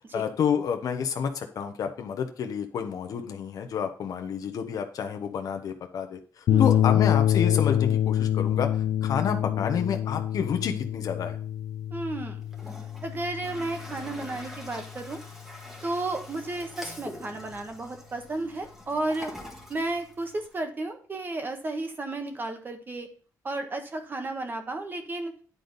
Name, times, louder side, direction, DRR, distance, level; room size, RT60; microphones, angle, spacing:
voice 1, 0.1-8.7 9.0-11.4, left 7 dB, 70° left, 5 dB, 0.9 m, -29 dB
sound 1, 6.5-15.0, left 11 dB, 90° left, 0.6 m, -26 dB
voice 2, 6.5-6.8 11.9-12.4 13.0-15.2 15.8-19.3 19.7-23.1 23.4-25.3, right 2 dB, 30° right, 6 dB, 1.3 m, -33 dB
Toilet flush, 12.4-20.6, left 1 dB, 5° right, 1.6 m, -45 dB
9.8 x 4.0 x 5.2 m, 0.41 s
wide cardioid pair, 140°, 6 cm